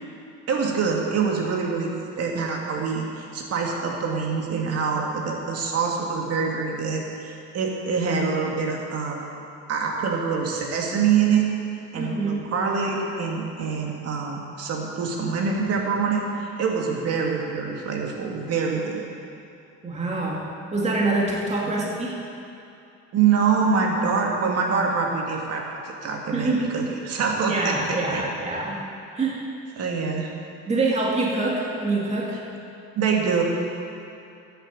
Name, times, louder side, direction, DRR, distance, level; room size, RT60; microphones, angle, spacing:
voice 1, 0.5-9.2 9.7-11.5 11.9-19.1 21.6-21.8 23.1-28.2 29.8-30.3 33.0-33.4, right 5 dB, 55° right, 0 dB, 2.3 m, -25 dB
voice 2, 11.9-12.4 19.8-22.2 26.3-26.8 27.5-28.8 29.2-29.4 30.7-32.4, right 2 dB, 20° right, -4 dB, 2.2 m, -25 dB
11.0 x 7.9 x 7.5 m, 2.7 s
cardioid pair, 100°, 30 cm